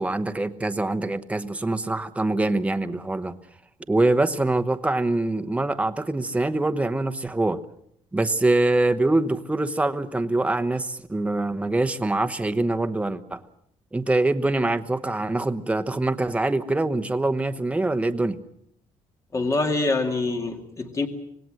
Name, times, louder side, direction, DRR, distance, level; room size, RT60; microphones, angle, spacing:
voice 1, 0.0-3.3 3.9-7.6 8.1-13.4 13.9-18.4, right 2 dB, 10° right, 1.0 m, -24 dB
voice 2, 19.3-21.1, left 3 dB, 25° left, 2.3 m, -25 dB
26.0 x 18.5 x 7.7 m
cardioid pair, 165°, 13 cm